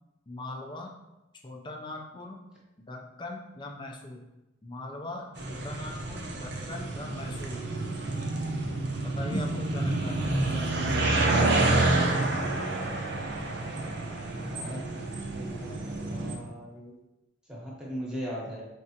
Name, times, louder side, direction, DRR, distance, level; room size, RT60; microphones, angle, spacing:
voice 1, 0.3-0.9 1.4-2.4 2.8-4.2 4.6-7.6 9.2-11.4, left 2 dB, 25° left, 2 dB, 0.4 m, -41 dB
sound 1, 5.4-16.4, right 2 dB, 55° right, 0.6 m, -29 dB
voice 2, 14.5-14.8 15.3-15.7 16.0-16.9 17.5-18.6, equal, 5° right, -6 dB, 1.0 m, -37 dB
4.9 x 3.3 x 2.8 m, 0.96 s
head